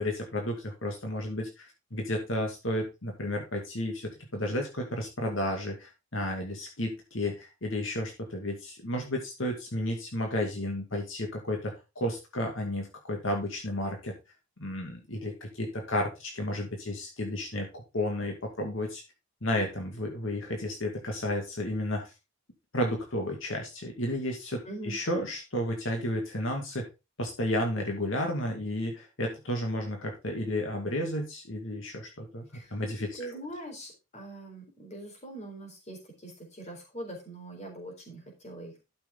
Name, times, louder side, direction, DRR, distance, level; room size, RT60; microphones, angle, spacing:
voice 1, 0.0-14.2 14.6-19.0 19.4-22.1 22.7-26.8 27.2-32.5 32.7-33.3, left 1 dB, 70° left, 2 dB, 2.3 m, -32 dB
voice 2, 24.6-25.0 32.5-32.8 33.2-38.8, right 1 dB, 30° left, 2 dB, 4.1 m, -42 dB
12.0 x 6.7 x 3.7 m, 0.27 s
head